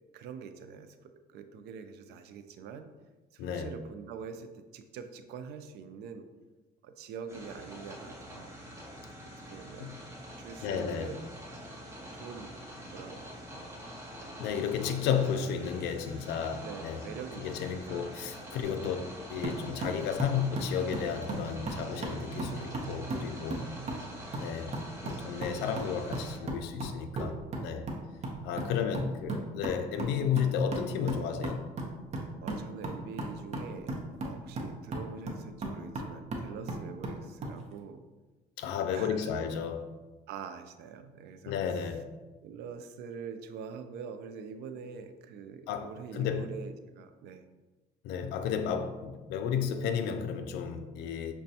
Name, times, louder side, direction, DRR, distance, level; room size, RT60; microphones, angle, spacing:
voice 1, 0.1-1.0 1.3-2.9 3.3-6.3 6.8-8.5 9.5-9.9 10.4-11.2 12.1-12.5 12.8-13.8 16.6-18.2 18.7-19.1 23.9-24.4 28.7-29.0 29.9-30.0 32.4-38.0 38.9-39.3 40.3-41.5 42.4-47.4, right 6 dB, 80° right, 0.4 m, -45 dB
voice 2, 3.4-3.7 9.8-10.0 10.6-11.1 14.4-17.1 17.4-23.6 24.4-24.8 25.0-27.9 28.4-31.7 38.6-39.9 41.5-42.1 45.7-46.5 48.0-51.3, left 7 dB, 85° left, 0.4 m, -33 dB
sound 1, 7.3-26.4, equal, 15° right, 1.1 m, -45 dB
sound 2, 19.4-37.6, right 2 dB, 40° right, 0.7 m, -38 dB
5.9 x 2.2 x 2.7 m
cardioid pair, 110°, 17 cm